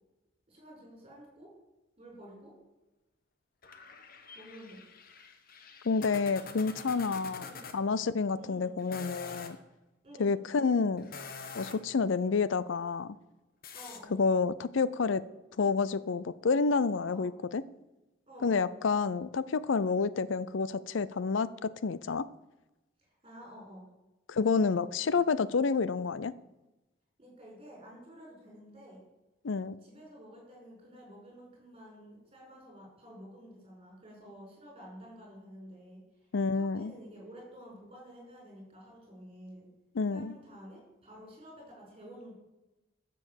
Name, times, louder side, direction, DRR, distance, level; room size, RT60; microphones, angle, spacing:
voice 1, 0.5-1.5 2.0-2.5 4.3-4.8 7.4-7.6 8.4-8.8 10.0-10.3 13.7-14.2 17.0-17.3 18.3-18.7 23.0-23.9 27.2-29.0 29.8-39.7 40.1-42.3, equal, 30° right, -2 dB, 5.4 m, -51 dB
sound 1, 3.6-7.8 8.8-9.5 11.0-11.9 13.6-14.0, left 5 dB, 50° left, 1.1 m, -46 dB
voice 2, 5.8-7.5 7.7-9.6 10.2-11.1 11.5-13.2 14.1-15.2 15.6-17.6 18.4-22.3 24.3-26.3 29.4-29.8 36.3-36.9 39.9-40.3, left 4 dB, 75° left, 17 dB, 0.5 m, -29 dB
13.0 x 6.9 x 7.1 m, 1.0 s
head